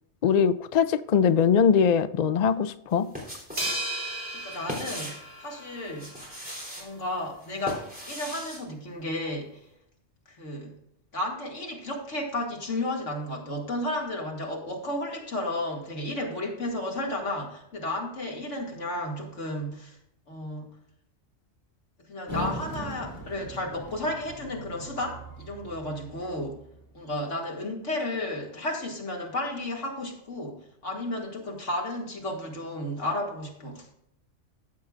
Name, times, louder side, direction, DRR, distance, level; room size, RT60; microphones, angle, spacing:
voice 1, 0.2-3.1, left 7 dB, 55° left, 0.5 m, -22 dB
sound 1, 2.9-3.8 4.1-5.3 5.9-6.9 7.4-8.6, equal, 5° right, 3.5 m, -38 dB
sound 2, 3.6-6.1, right 1 dB, 65° right, 4.8 m, -34 dB
voice 2, 4.3-6.1 6.8-9.6 10.3-10.8 11.1-20.0 20.3-20.7 22.1-26.6 26.9-33.9, left 1 dB, 80° left, 2.6 m, -33 dB
sound 3, 22.3-26.8, left 1 dB, 15° left, 2.4 m, -39 dB
15.0 x 7.8 x 2.5 m
omnidirectional pair, 1.2 m